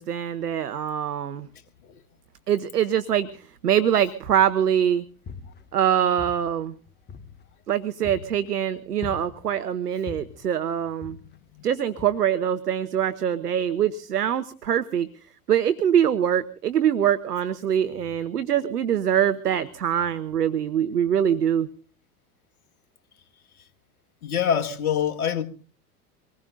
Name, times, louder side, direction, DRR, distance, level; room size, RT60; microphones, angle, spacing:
voice 1, 0.0-1.5 2.5-5.0 5.7-6.7 7.7-11.2 11.6-15.1 15.5-21.7, right 9 dB, 85° right, 0.9 m, -24 dB
sound 1, 4.3-4.7 5.1-5.9 6.2-7.6 8.0-8.5 9.0-9.6 10.1-10.5 11.0-11.5 12.0-12.1, left 5 dB, 20° left, 1.1 m, -42 dB
voice 2, 24.2-25.4, left 8 dB, 70° left, 1.8 m, -24 dB
24.5 x 20.0 x 2.6 m
figure-of-eight pair, 80°, 46 cm